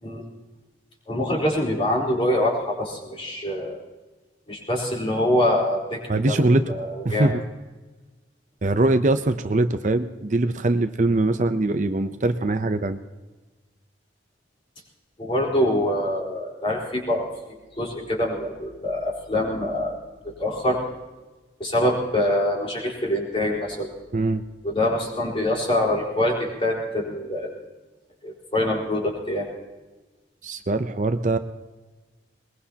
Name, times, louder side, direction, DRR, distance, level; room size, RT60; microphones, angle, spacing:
voice 1, 1.1-3.8 4.5-6.4 6.7-7.3 15.2-17.3 17.8-19.9 20.2-20.8 21.6-23.9 24.6-27.5 28.2-29.5, left 1 dB, 30° left, -2 dB, 4.3 m, -24 dB
voice 2, 6.1-6.7 7.0-7.4 8.6-13.0 24.1-24.4 30.4-31.4, right 2 dB, 40° right, 9 dB, 0.6 m, -22 dB
21.5 x 21.0 x 2.9 m, 1.2 s
head